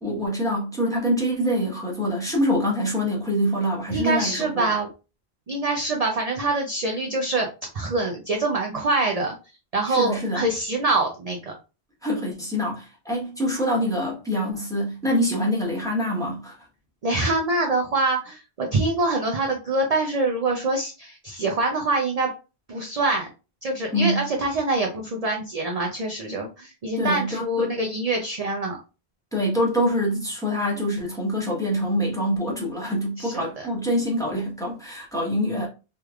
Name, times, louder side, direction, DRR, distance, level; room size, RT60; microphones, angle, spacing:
voice 1, 0.0-4.7 9.9-10.4 12.0-16.6 23.9-24.2 27.0-27.7 29.3-35.7, equal, 5° left, 1.0 m, -25 dB
voice 2, 3.9-4.9 5.5-7.5 7.7-9.4 9.7-11.5 17.0-22.3 22.7-23.3 23.6-28.8 33.2-33.7, right 2 dB, 45° right, 0.6 m, -25 dB
3.2 x 3.1 x 2.3 m
omnidirectional pair, 1.1 m